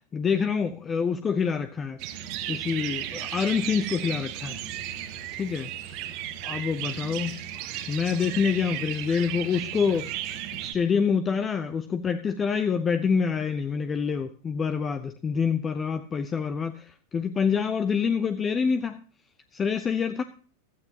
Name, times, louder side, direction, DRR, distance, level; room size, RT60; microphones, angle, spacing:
voice 1, 0.1-2.0 2.5-4.6 5.4-5.7 6.4-7.4 7.9-10.1 10.6-19.0 19.5-20.2, left 6 dB, 20° left, 10 dB, 0.8 m, -26 dB
sound 1, 2.0-10.7, right 11 dB, 45° right, 1.3 m, -35 dB
16.0 x 13.0 x 2.9 m, 0.41 s
figure-of-eight pair, 90°, 0 cm